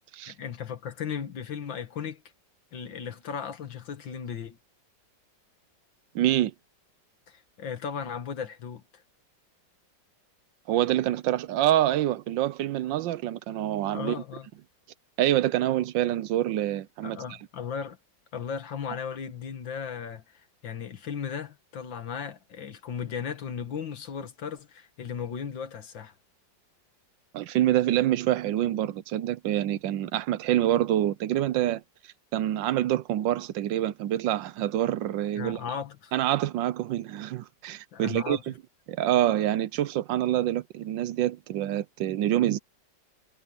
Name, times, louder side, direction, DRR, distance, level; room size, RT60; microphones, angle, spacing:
voice 1, 0.3-2.2 2.7-4.6 7.3-8.8 13.9-14.5 17.0-18.0 18.3-26.1 35.4-36.1 37.9-38.4, left 7 dB, 90° left, 2.3 m, -36 dB
voice 2, 6.1-6.5 10.7-14.1 15.2-17.2 27.3-31.8 32.3-35.6 36.1-38.5 38.9-42.6, right 13 dB, 85° right, 1.4 m, -26 dB
omnidirectional pair, 2.0 m